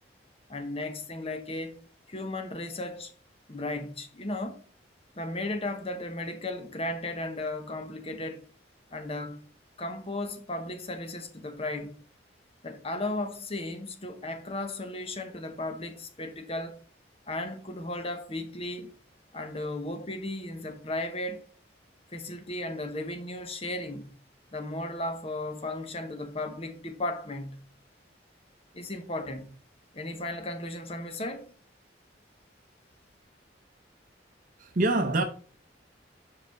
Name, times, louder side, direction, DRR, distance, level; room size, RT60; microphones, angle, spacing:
voice 1, 0.5-1.8 2.1-3.1 3.5-4.6 5.2-8.4 8.9-9.4 9.8-12.0 12.6-16.8 17.3-18.9 19.3-21.5 22.1-24.1 24.5-27.7 28.7-29.5 29.9-31.5, left 2 dB, 35° left, 0.9 m, -35 dB
voice 2, 34.6-35.2, right 2 dB, 45° right, 0.7 m, -25 dB
5.7 x 4.8 x 4.6 m
head